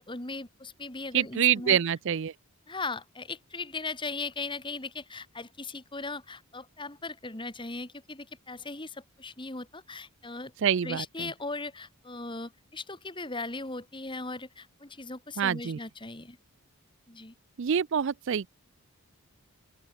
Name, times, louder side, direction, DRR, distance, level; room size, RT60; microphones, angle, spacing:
voice 1, 0.0-1.8 2.7-10.5 10.8-16.4 17.1-17.3, left 3 dB, 20° left, 2.4 m, -38 dB
voice 2, 1.1-2.3 10.6-11.3 15.4-15.8 17.6-18.5, right 8 dB, 55° right, 0.4 m, -26 dB
open air
head